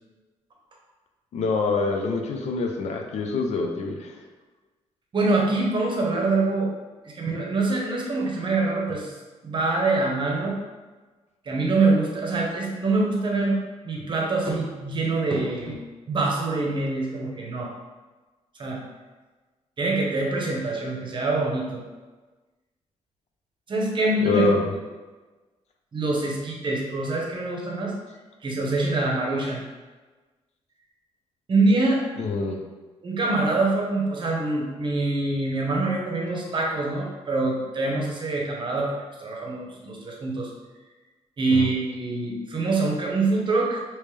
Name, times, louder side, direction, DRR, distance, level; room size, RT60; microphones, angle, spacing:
voice 1, 1.3-4.2 24.2-24.7 32.2-32.6 41.5-41.7, left 3 dB, 70° left, 2 dB, 0.5 m, -25 dB
voice 2, 5.1-6.7 7.0-9.1 9.4-10.6 11.4-13.6 13.8-15.8 16.1-17.7 18.6-18.8 19.8-21.8 23.7-24.6 25.9-27.9 28.4-29.6 31.5-32.0 33.0-40.5 41.4-43.8, right 2 dB, 45° right, -1 dB, 0.9 m, -25 dB
3.3 x 3.0 x 3.3 m, 1.3 s
cardioid pair, 95°, 12 cm